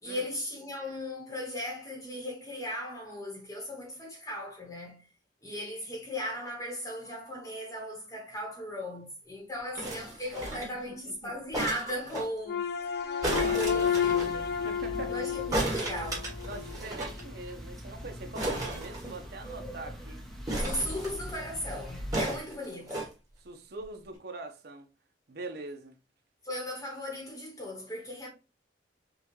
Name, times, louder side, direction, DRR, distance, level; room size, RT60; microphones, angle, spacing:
voice 1, 0.0-5.1 5.4-12.6 13.5-14.5 15.1-16.4 20.6-23.0 26.4-28.3, left 1 dB, 20° left, 1.0 m, -37 dB
sound 1, 9.7-10.8 11.5-12.3 13.2-14.3 15.5-17.2 17.5-17.6 17.8-17.9 18.3-19.5 20.5-21.4 22.1-23.1 23.8-23.9, right 1 dB, 20° right, 1.4 m, -34 dB
voice 2, 10.5-11.3 13.2-14.0 14.6-15.2 16.4-20.2 23.4-24.9 25.3-26.0, right 2 dB, 60° right, 0.7 m, -43 dB
sound 2, 12.5-16.8, left 8 dB, 60° left, 0.4 m, -30 dB
sound 3, 13.3-22.2, equal, ahead, 0.7 m, -42 dB
5.7 x 2.3 x 3.1 m
head